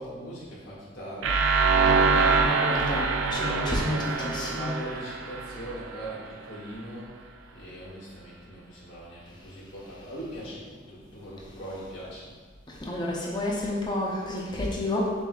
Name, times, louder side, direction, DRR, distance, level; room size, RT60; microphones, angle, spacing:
voice 1, 0.0-1.4 3.2-7.1 7.5-12.3, equal, 75° left, -7 dB, 1.5 m, -40 dB
sound 1, 1.2-6.1, right 4 dB, 70° right, 0.3 m, -24 dB
voice 2, 2.1-4.8 12.7-15.1, left 1 dB, 20° left, -2 dB, 0.6 m, -30 dB
7.0 x 2.6 x 2.3 m, 1.5 s
head